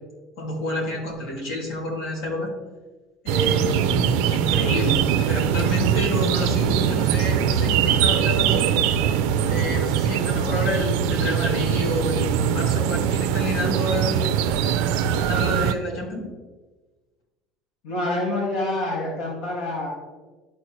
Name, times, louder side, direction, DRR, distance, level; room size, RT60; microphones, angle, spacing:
voice 1, 0.4-2.5 3.2-8.7 9.4-14.4 15.2-16.3, left 2 dB, 65° left, -2 dB, 2.3 m, -29 dB
sound 1, 3.3-15.7, right 9 dB, 80° right, 0.5 m, -22 dB
voice 2, 17.8-19.9, left 1 dB, 85° left, -4 dB, 2.0 m, -27 dB
12.0 x 4.2 x 3.1 m, 1.2 s
cardioid pair, 175°, 0 cm